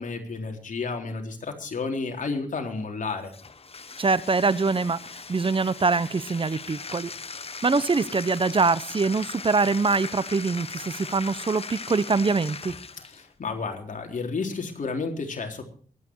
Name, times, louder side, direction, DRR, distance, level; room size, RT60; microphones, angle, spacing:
voice 1, 0.0-3.3 13.1-15.6, left 4 dB, 55° left, 3 dB, 3.8 m, -31 dB
Bathtub (filling or washing), 3.2-13.3, left 4 dB, 40° left, 1.1 m, -39 dB
voice 2, 4.0-5.0 5.3-7.1 7.6-12.7, right 4 dB, 35° right, 17 dB, 0.9 m, -24 dB
23.5 x 9.7 x 4.7 m, 0.42 s
cardioid pair, 75°, 15 cm